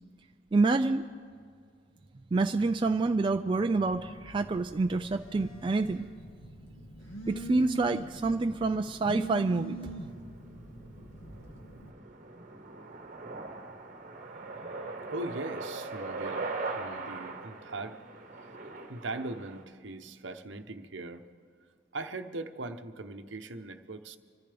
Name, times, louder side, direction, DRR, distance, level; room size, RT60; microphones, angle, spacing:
voice 1, 0.5-1.0 2.3-6.1 7.3-9.9, right 3 dB, 25° right, 6 dB, 0.3 m, -27 dB
Telephone, 3.8-11.9, right 3 dB, 85° left, 2.3 m, -43 dB
sound 1, 8.6-19.6, right 3 dB, 40° right, 1.2 m, -41 dB
voice 2, 15.1-18.0 18.9-21.2 21.9-24.2, right 2 dB, 65° right, 7 dB, 0.9 m, -40 dB
26.0 x 14.0 x 3.4 m, 2.1 s
head